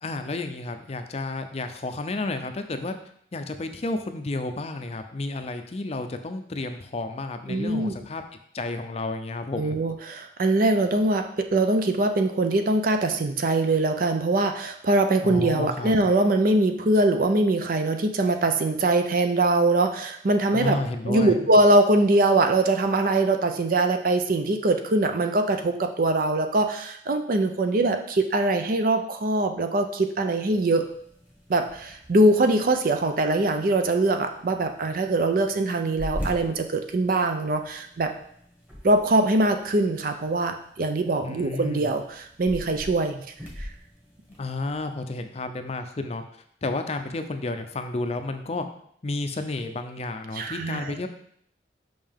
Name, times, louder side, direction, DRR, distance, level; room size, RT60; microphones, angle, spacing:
voice 1, 0.0-2.9 3.3-8.2 8.5-9.8 15.2-15.9 20.5-21.5 41.2-41.9 44.4-46.2 46.6-48.7 49.0-51.1, left 2 dB, 35° left, 7 dB, 0.5 m, -31 dB
voice 2, 7.5-8.0 9.6-20.8 21.1-30.9 31.5-38.1 38.8-43.2 43.6-43.7 50.3-51.0, right 2 dB, 50° right, 7 dB, 0.5 m, -22 dB
sound 1, 30.2-45.0, equal, 10° right, 1.4 m, -43 dB
5.6 x 5.4 x 3.5 m, 0.67 s
head